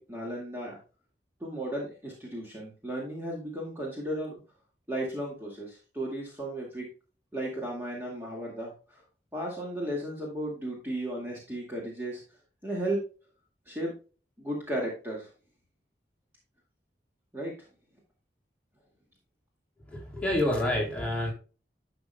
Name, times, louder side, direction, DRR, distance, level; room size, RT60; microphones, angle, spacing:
voice 1, 0.1-0.8 1.4-4.4 4.9-6.9 7.3-9.0 9.3-12.2 12.6-13.0 13.7-13.9 14.4-15.3 17.3-17.5, right 1 dB, 10° right, -3 dB, 2.0 m, -34 dB
voice 2, 19.9-21.3, left 1 dB, 5° left, -3 dB, 2.9 m, -28 dB
11.5 x 6.0 x 2.3 m, 0.34 s
head